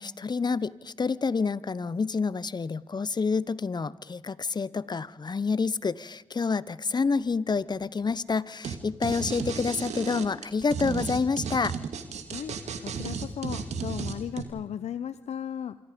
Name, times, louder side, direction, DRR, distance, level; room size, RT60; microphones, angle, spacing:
voice 1, 0.0-11.7, left 4 dB, 35° left, 19 dB, 0.9 m, -28 dB
sound 1, 8.6-8.7 9.0-14.4, right 6 dB, 70° right, 2.2 m, -33 dB
voice 2, 12.3-15.8, left 9 dB, 65° left, 14 dB, 0.7 m, -36 dB
27.0 x 24.5 x 5.2 m, 1.0 s
supercardioid pair, 50°, 12 cm